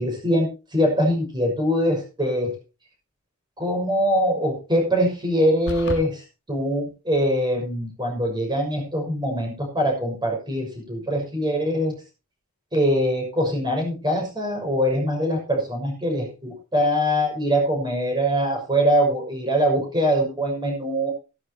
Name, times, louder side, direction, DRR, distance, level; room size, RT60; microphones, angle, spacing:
voice 1, 0.0-2.6 3.6-12.0 12.7-21.1, equal, 20° right, 1 dB, 6.1 m, -23 dB
sound 1, 5.7-6.1, left 1 dB, 55° left, 1.4 m, -30 dB
15.0 x 12.0 x 3.0 m, 0.31 s
head